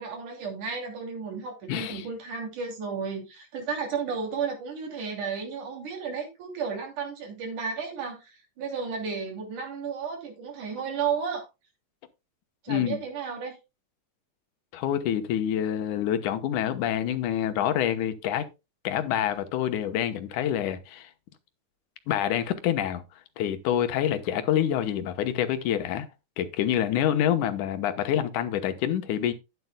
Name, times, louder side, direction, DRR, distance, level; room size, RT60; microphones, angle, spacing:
voice 1, 0.0-11.5 12.6-13.6, right 5 dB, 85° right, 4.3 m, -33 dB
voice 2, 1.7-2.1 12.7-13.0 14.7-18.5 18.8-21.1 22.1-23.0 23.4-26.1 26.4-29.3, left 10 dB, 90° left, 2.6 m, -27 dB
12.5 x 9.5 x 2.2 m
omnidirectional pair, 3.4 m